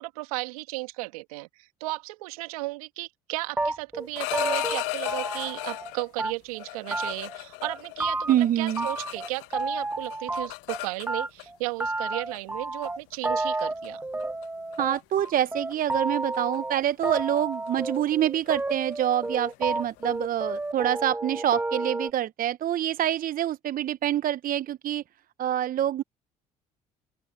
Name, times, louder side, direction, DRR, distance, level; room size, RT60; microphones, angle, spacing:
voice 1, 0.0-14.0, right 22 dB, 80° right, 2.3 m, -35 dB
sound 1, 3.6-5.9 6.2-6.6 6.9-7.4 7.6-8.5 8.8-10.8 11.1-22.1, right 2 dB, 10° right, 0.5 m, -31 dB
sound 2, 4.0-6.1 6.6-9.6 9.9-11.4 12.3-12.5 12.8-13.2 13.6-13.9 14.2-14.4 14.7-15.0 15.2-20.6, left 28 dB, 70° left, 0.7 m, -36 dB
voice 2, 8.3-8.9 14.8-25.0 25.4-26.0, right 11 dB, 50° right, 0.9 m, -26 dB
open air
hypercardioid pair, 55°, 18 cm